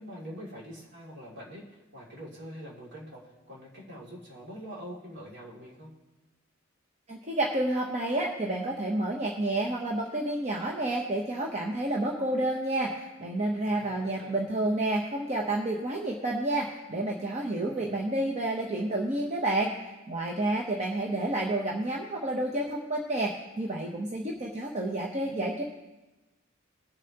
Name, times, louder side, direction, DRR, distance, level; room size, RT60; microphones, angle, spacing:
voice 1, 0.0-5.9 13.6-14.4 17.6-18.0, equal, 60° right, -5 dB, 2.7 m, -44 dB
voice 2, 7.1-25.6, right 1 dB, 35° right, 0 dB, 0.9 m, -30 dB
20.5 x 6.9 x 2.9 m, 1.1 s
head